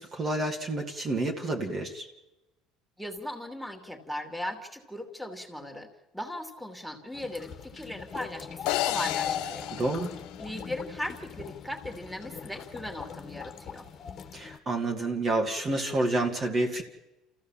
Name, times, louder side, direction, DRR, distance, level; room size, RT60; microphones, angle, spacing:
voice 1, 0.0-2.1 9.7-10.1 14.3-16.8, right 2 dB, 30° right, 1 dB, 2.3 m, -29 dB
voice 2, 3.0-9.7 10.4-13.9, left 1 dB, ahead, 5 dB, 2.9 m, -38 dB
sound 1, 7.1-14.6, left 8 dB, 45° left, 1.7 m, -40 dB
sound 2, 8.7-11.0, left 16 dB, 80° left, 0.8 m, -33 dB
28.0 x 15.0 x 7.4 m, 0.99 s
cardioid pair, 120°, 0 cm